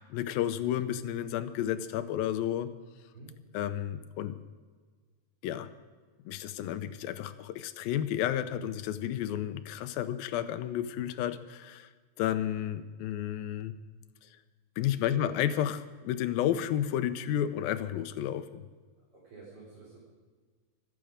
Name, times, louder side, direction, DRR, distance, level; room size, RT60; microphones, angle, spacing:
voice 1, 0.1-2.7 3.5-4.4 5.4-5.7 6.3-11.9 12.2-13.8 14.8-18.6, left 11 dB, 85° left, 11 dB, 2.6 m, -31 dB
voice 2, 15.1-15.5 19.1-20.0, right 4 dB, 40° right, -8 dB, 4.7 m, -47 dB
25.5 x 9.1 x 5.1 m, 1.5 s
omnidirectional pair, 4.0 m